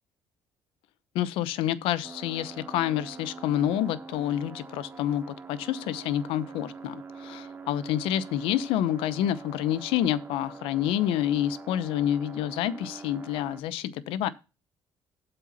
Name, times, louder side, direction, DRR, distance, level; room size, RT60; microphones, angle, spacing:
voice 1, 1.1-14.3, left 11 dB, 85° left, 0.8 m, -28 dB
sound 1, 2.0-13.6, right 4 dB, 25° right, 2.3 m, -44 dB
8.1 x 5.6 x 5.6 m
cardioid pair, 115°, 9 cm